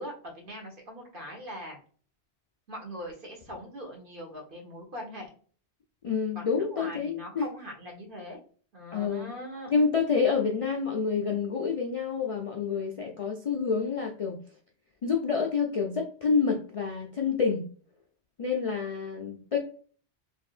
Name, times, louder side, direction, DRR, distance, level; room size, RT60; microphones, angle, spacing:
voice 1, 0.0-1.8 2.7-5.3 6.3-8.4 8.7-9.7, equal, 55° right, 0 dB, 1.3 m, -41 dB
voice 2, 6.0-7.5 8.9-9.3 9.7-14.4 15.0-17.7 18.4-19.6, left 5 dB, 50° left, 0 dB, 0.4 m, -28 dB
3.3 x 2.7 x 2.4 m, 0.43 s
omnidirectional pair, 1.1 m